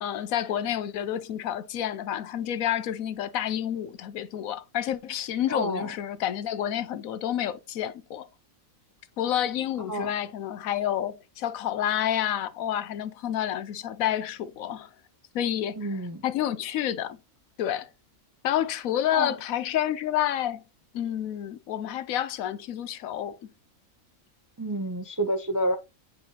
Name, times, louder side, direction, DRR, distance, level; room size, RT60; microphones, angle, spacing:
voice 1, 0.0-8.3 9.2-14.9 15.3-15.9 16.2-17.2 17.6-17.9 18.4-20.6 20.9-23.4, left 11 dB, 75° left, 1.1 m, -29 dB
voice 2, 5.5-5.9 9.9-10.1 15.8-16.2 19.1-19.4 24.6-25.8, right 1 dB, 25° right, 0.4 m, -29 dB
9.0 x 5.0 x 2.8 m
omnidirectional pair, 1.5 m